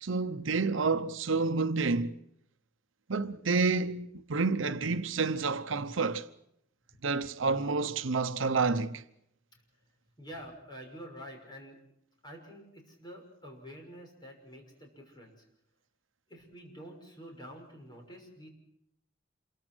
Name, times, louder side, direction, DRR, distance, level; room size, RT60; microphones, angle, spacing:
voice 1, 0.0-2.2 3.1-6.3 7.0-9.0, right 4 dB, 75° right, 0.9 m, -29 dB
voice 2, 10.2-11.8 12.2-15.4 16.3-18.5, equal, 20° left, 6.2 m, -48 dB
27.5 x 23.5 x 6.3 m
head